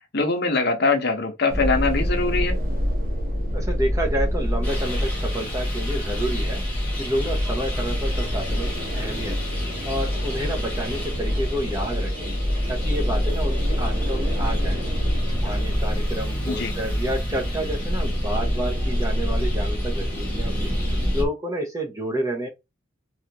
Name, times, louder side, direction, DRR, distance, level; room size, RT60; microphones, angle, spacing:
voice 1, 0.1-2.6 16.4-16.7, left 3 dB, 55° left, 0.8 m, -22 dB
sound 1, 1.5-21.3, equal, 45° right, 0.8 m, -25 dB
voice 2, 3.5-6.6 7.0-9.4 9.8-12.3 12.7-14.8 15.4-20.7 21.1-22.5, right 1 dB, 15° right, 0.7 m, -29 dB
Traffic noise roadway noise, 4.6-21.2, left 1 dB, 10° left, 1.3 m, -37 dB
3.3 x 2.4 x 2.8 m
head